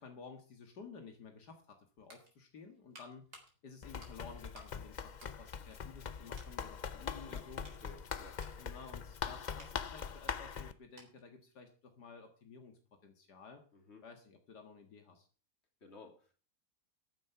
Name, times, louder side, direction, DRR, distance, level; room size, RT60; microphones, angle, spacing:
voice 1, 0.0-3.2 3.6-7.6 8.6-12.7 13.0-13.6 14.0-15.3, left 5 dB, 85° left, 4 dB, 2.4 m, -53 dB
sound 1, 2.0-4.8 5.1-6.0 6.3-6.6 7.1-11.4 11.7-11.8, right 1 dB, 75° right, 4.5 m, -60 dB
Run, 3.8-10.7, left 6 dB, 60° left, 0.4 m, -42 dB
voice 2, 7.0-8.4 13.7-14.0 15.8-16.3, left 3 dB, 40° left, 3 dB, 3.2 m, -56 dB
14.0 x 9.7 x 5.7 m, 0.39 s
omnidirectional pair, 1.7 m